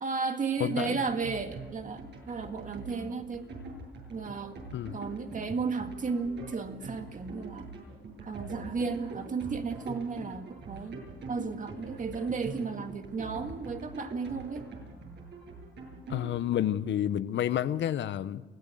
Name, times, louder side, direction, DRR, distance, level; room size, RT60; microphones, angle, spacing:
voice 1, 0.0-3.4 4.1-4.6 4.9-7.7 8.2-11.0 11.3-14.7, right 4 dB, 40° right, 2.0 m, -34 dB
voice 2, 0.6-1.0 4.7-5.0 16.1-18.4, left 11 dB, 70° left, 0.8 m, -29 dB
sound 1, 0.9-16.5, right 3 dB, 60° right, 7.9 m, -43 dB
24.0 x 16.5 x 7.8 m
cardioid pair, 90°, 20 cm